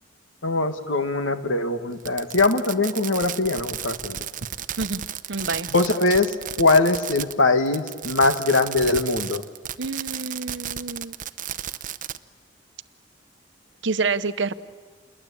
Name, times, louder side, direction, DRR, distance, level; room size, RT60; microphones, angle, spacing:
voice 1, 0.4-4.2 5.7-9.4, left 3 dB, 85° left, 8 dB, 1.8 m, -22 dB
Fireworks, 2.0-7.4 7.7-12.2, right 10 dB, 40° right, 0.7 m, -33 dB
voice 2, 5.3-5.7 9.8-11.1 13.8-14.5, right 4 dB, 65° right, 12 dB, 0.9 m, -27 dB
28.0 x 22.0 x 8.7 m, 1.5 s
head